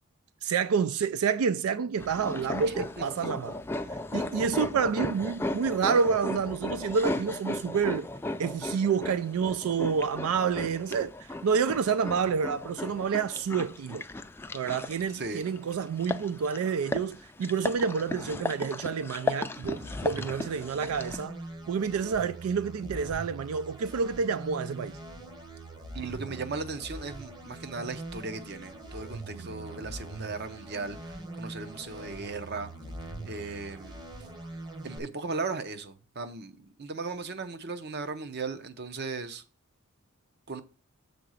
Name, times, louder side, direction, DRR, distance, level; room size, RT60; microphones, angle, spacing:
voice 1, 0.4-3.6 4.1-8.1 8.4-11.1 11.4-14.0 14.5-21.3 21.7-24.9 29.3-29.5, right 6 dB, 90° right, 0.4 m, -28 dB
sound 1, 2.0-21.2, left 2 dB, 10° left, 0.3 m, -36 dB
voice 2, 2.7-3.3 15.1-15.4 25.9-32.7 33.2-34.1 34.8-39.4 40.5-40.6, right 4 dB, 50° right, 0.7 m, -37 dB
sound 2, 19.6-35.0, right 1 dB, 20° right, 0.8 m, -42 dB
6.9 x 3.9 x 6.2 m
head